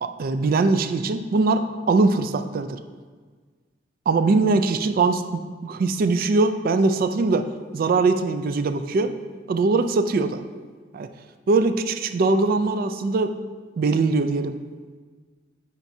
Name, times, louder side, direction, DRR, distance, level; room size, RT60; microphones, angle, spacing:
voice 1, 0.0-2.8 4.1-7.5 7.7-9.2 9.5-10.4 10.9-11.1 11.5-13.4 13.8-14.6, right 3 dB, 50° right, 9 dB, 0.3 m, -21 dB
9.1 x 4.2 x 2.7 m, 1.5 s
head